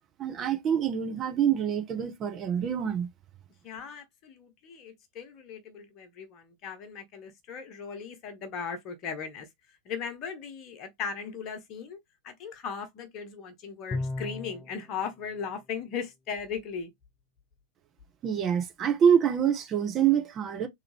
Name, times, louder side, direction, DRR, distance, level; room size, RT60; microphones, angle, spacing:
voice 1, 0.2-3.1 18.2-20.7, right 8 dB, 30° right, 0.9 m, -26 dB
voice 2, 3.6-9.5 9.8-12.0 12.2-16.9, left 6 dB, 35° left, 1.1 m, -38 dB
Bowed string instrument, 13.9-14.8, left 2 dB, 20° left, 0.3 m, -33 dB
3.6 x 3.0 x 3.3 m
figure-of-eight pair, 90°, 0 cm